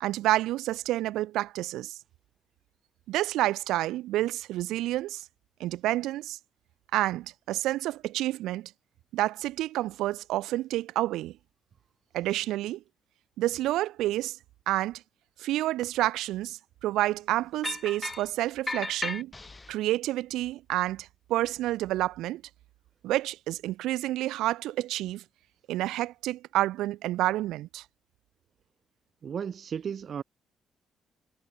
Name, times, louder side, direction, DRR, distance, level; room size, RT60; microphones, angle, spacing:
voice 1, 0.0-2.0 3.1-5.2 5.6-6.4 6.9-8.7 9.1-11.3 12.1-12.8 13.4-14.4 14.7-15.0 15.4-19.3 19.7-22.4 23.0-25.2 25.7-27.8, right 15 dB, 90° right, 0.7 m, -29 dB
sound 1, 17.6-18.3 18.7-19.7, left 3 dB, 20° left, 0.5 m, -35 dB
voice 2, 29.2-30.2, right 7 dB, 55° right, 0.3 m, -34 dB
cardioid pair, 90°, 0 cm